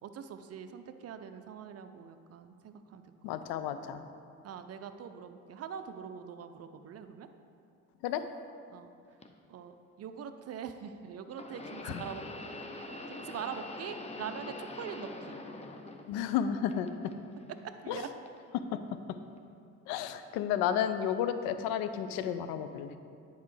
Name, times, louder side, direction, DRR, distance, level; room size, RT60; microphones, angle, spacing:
voice 1, 0.0-3.0 4.4-7.3 8.7-8.9 9.5-12.2 13.1-15.4 17.8-18.1, right 7 dB, 35° right, 9 dB, 0.5 m, -43 dB
voice 2, 3.2-4.0 8.0-8.2 11.8-12.0 16.1-17.1 17.9-18.0 18.5-18.8 19.9-23.0, left 9 dB, 60° left, 10 dB, 0.6 m, -32 dB
sound 1, 9.2-9.3 11.3-16.4 16.7-17.5 18.3-18.4 19.4-19.5, left 2 dB, 15° left, 0.6 m, -44 dB
9.9 x 4.8 x 3.2 m, 2.5 s
figure-of-eight pair, 50°, 43 cm